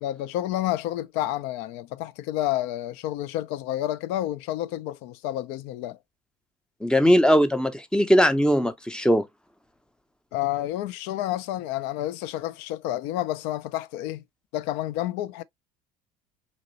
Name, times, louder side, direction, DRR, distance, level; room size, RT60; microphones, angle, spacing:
voice 1, 0.0-6.0 10.3-14.2 14.5-15.4, left 13 dB, 60° left, 0.4 m, -29 dB
voice 2, 6.8-9.3, equal, 5° left, 0.6 m, -20 dB
4.1 x 2.9 x 2.6 m
figure-of-eight pair, 65°, 20 cm